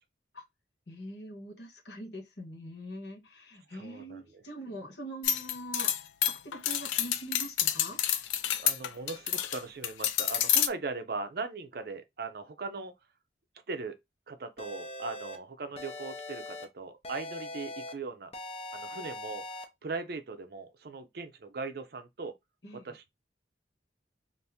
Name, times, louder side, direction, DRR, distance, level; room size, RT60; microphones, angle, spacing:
voice 1, 0.9-5.9 6.4-8.0 22.6-22.9, right 1 dB, 65° left, 1.2 m, -43 dB
voice 2, 3.7-4.4 8.6-12.9 13.7-14.0 14.3-18.3 18.7-22.4 22.7-23.1, right 3 dB, 55° right, 0.5 m, -39 dB
sound 1, 5.2-9.6 9.8-10.7, left 10 dB, 85° left, 0.4 m, -28 dB
sound 2, 14.6-15.4 15.8-16.6 17.0-17.9 18.3-19.6, left 2 dB, 30° left, 0.5 m, -41 dB
2.7 x 2.5 x 3.4 m
head